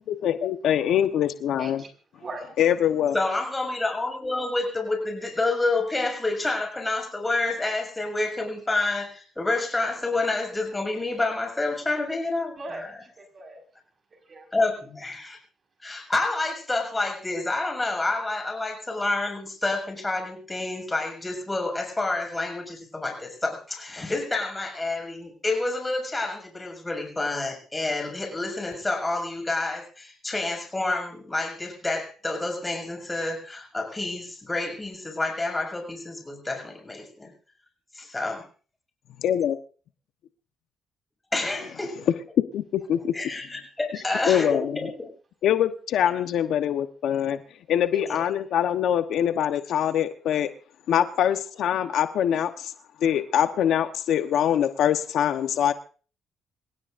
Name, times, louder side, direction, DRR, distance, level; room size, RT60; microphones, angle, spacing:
voice 1, 0.1-1.8 2.6-3.2 39.2-39.5 42.5-42.6 42.9-43.1 44.3-44.8 45.4-47.4 47.7-50.5 50.9-52.7 53.0-55.7, left 10 dB, 75° left, 9 dB, 1.1 m, -23 dB
voice 2, 1.6-1.9 2.2-2.5 12.6-13.6 14.1-14.5 44.0-44.2 47.9-48.3, right 2 dB, 40° right, 5 dB, 5.3 m, -39 dB
voice 3, 3.1-13.0 14.5-15.4 15.8-37.3 37.9-38.4 41.3-42.1 43.1-45.1, left 2 dB, 15° left, 3 dB, 6.7 m, -28 dB
27.0 x 17.0 x 2.6 m, 0.39 s
cardioid pair, 90°, 0 cm